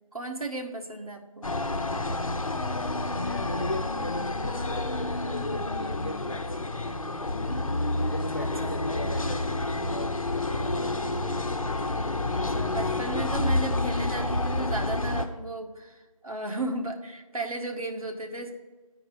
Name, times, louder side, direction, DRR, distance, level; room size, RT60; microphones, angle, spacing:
voice 1, 0.1-1.5 8.4-8.8 12.3-18.5, right 2 dB, 75° right, 1.6 m, -35 dB
sound 1, 1.4-15.3, left 2 dB, 70° left, 0.9 m, -29 dB
voice 2, 3.2-7.4 7.9-11.2, left 1 dB, 40° left, 0.4 m, -38 dB
9.4 x 4.6 x 7.1 m
figure-of-eight pair, 170°, 18 cm